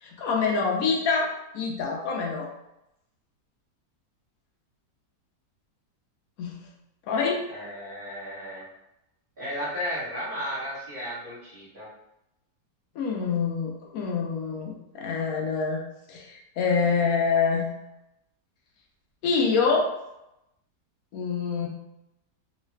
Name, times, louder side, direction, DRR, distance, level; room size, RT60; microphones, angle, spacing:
voice 1, 0.0-2.5 6.4-6.6 7.1-7.4 13.0-15.8 16.1-17.7 19.2-20.0 21.1-21.7, left 5 dB, 70° left, 0 dB, 0.9 m, -26 dB
voice 2, 7.5-8.6 9.4-11.9, equal, 30° right, -8 dB, 1.5 m, -34 dB
3.1 x 2.4 x 3.1 m, 0.86 s
omnidirectional pair, 1.8 m